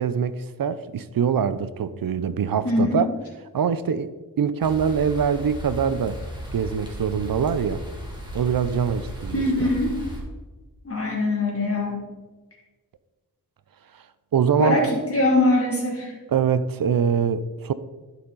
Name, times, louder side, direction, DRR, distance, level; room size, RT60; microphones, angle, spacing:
voice 1, 0.0-3.1 3.5-4.1 4.4-6.2 6.5-7.8 8.3-9.7 14.3-14.8 16.3-17.7, right 7 dB, 60° right, 14 dB, 0.6 m, -23 dB
voice 2, 2.6-3.0 9.3-9.9 10.8-12.0 14.6-16.1, left 2 dB, 35° left, -3 dB, 2.7 m, -22 dB
sound 1, 4.6-10.2, equal, 10° right, 2.5 m, -36 dB
11.5 x 5.8 x 4.0 m, 1.2 s
cardioid pair, 65°, 39 cm